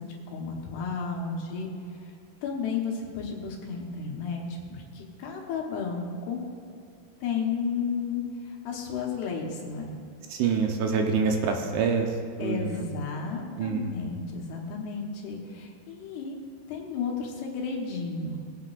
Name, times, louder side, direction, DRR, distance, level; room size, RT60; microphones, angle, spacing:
voice 1, 0.0-1.7 2.4-6.4 7.2-9.9 12.4-16.4 16.7-18.4, left 5 dB, 75° left, 0 dB, 3.1 m, -33 dB
voice 2, 10.4-12.1 12.4-12.9 13.6-14.0, right 5 dB, 75° right, 3 dB, 2.8 m, -26 dB
19.0 x 8.2 x 2.5 m, 2.5 s
omnidirectional pair, 4.9 m